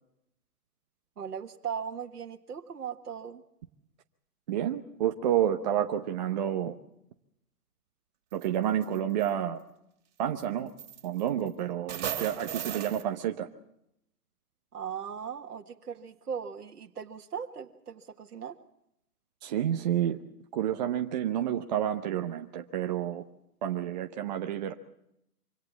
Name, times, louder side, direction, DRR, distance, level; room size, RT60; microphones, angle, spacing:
voice 1, 1.2-3.4 14.7-18.6, right 7 dB, 75° right, 4 dB, 1.7 m, -38 dB
voice 2, 4.5-6.7 8.3-9.6 10.2-10.7 11.0-13.5 19.4-20.2 20.5-23.2 23.6-24.7, right 10 dB, 30° right, 6 dB, 0.8 m, -29 dB
sound 1, 8.3-8.5 8.8-9.3 10.4-10.5 10.8-11.5 11.9-13.0, right 9 dB, 50° right, 2.9 m, -36 dB
25.0 x 17.5 x 7.3 m, 0.79 s
hypercardioid pair, 140°, 46 cm